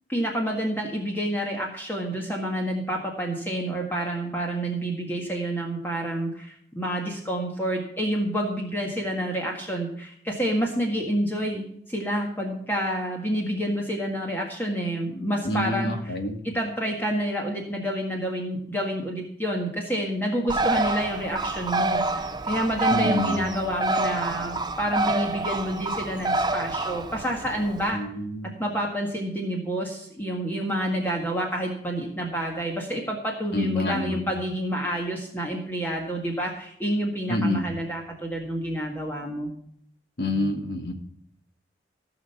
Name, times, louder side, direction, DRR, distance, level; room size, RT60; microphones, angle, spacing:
voice 1, 0.1-16.1 16.4-28.0 28.4-39.5, equal, 10° left, -1 dB, 1.7 m, -28 dB
voice 2, 15.4-16.4 22.9-23.4 27.9-28.5 33.5-34.2 37.3-37.6 40.2-40.9, left 1 dB, 60° left, 3 dB, 2.2 m, -27 dB
Bird, 20.5-27.9, right 2 dB, 25° right, 0.6 m, -27 dB
15.5 x 6.3 x 5.7 m, 0.67 s
head